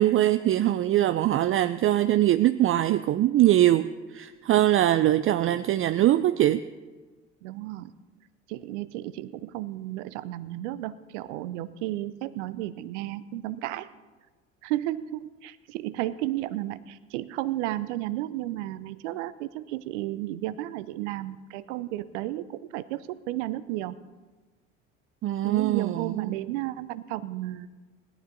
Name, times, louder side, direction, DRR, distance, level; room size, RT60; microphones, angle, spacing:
voice 1, 0.0-3.9 4.1-6.6 25.2-26.3, right 13 dB, 35° right, 11 dB, 0.5 m, -22 dB
voice 2, 7.4-7.9 8.5-13.9 14.6-24.0 25.4-27.9, right 15 dB, 70° right, 14 dB, 0.7 m, -33 dB
17.5 x 12.0 x 4.0 m, 1.3 s
hypercardioid pair, 65°, 37 cm